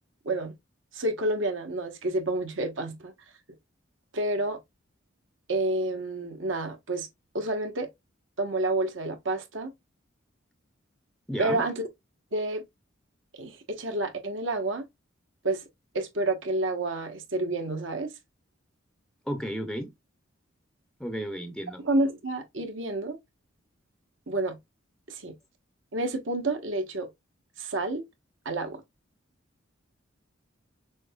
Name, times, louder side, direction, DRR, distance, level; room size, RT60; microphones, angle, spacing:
voice 1, 0.9-3.1 4.1-4.6 5.5-7.1 7.3-7.9 8.4-9.7 11.4-11.9 12.3-12.6 13.4-14.9 15.4-15.6 15.9-18.1 21.8-23.2 24.3-24.6 25.1-25.3 25.9-27.1 27.6-28.0 28.4-28.8, right 2 dB, 75° right, 1.2 m, -29 dB
voice 2, 11.3-11.6 19.3-19.9 21.0-21.8, equal, ahead, 0.5 m, -33 dB
6.2 x 2.8 x 2.3 m
head